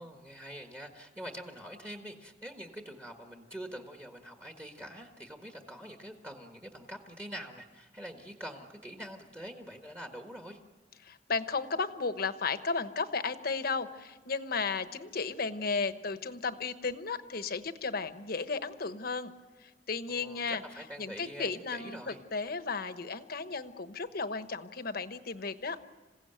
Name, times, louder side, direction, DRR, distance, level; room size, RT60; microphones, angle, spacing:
voice 1, 0.0-10.6 20.1-22.2, equal, 15° right, 3 dB, 1.6 m, -45 dB
voice 2, 11.0-19.3 19.6-20.6 21.0-25.8, left 4 dB, 55° left, 10 dB, 1.1 m, -34 dB
27.5 x 16.5 x 9.0 m, 1.3 s
head